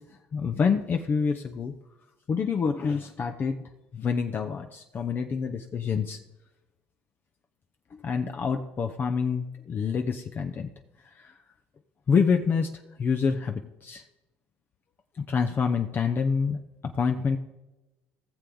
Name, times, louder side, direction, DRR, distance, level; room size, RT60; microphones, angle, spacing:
voice 1, 0.3-1.7 2.3-3.7 3.9-6.2 7.9-10.7 11.2-11.3 12.1-12.7 13.0-14.0 15.2-16.6 16.8-17.4, left 5 dB, 40° left, 5 dB, 0.8 m, -27 dB
17.5 x 6.9 x 3.8 m, 1.0 s
supercardioid pair, 80°, 5 cm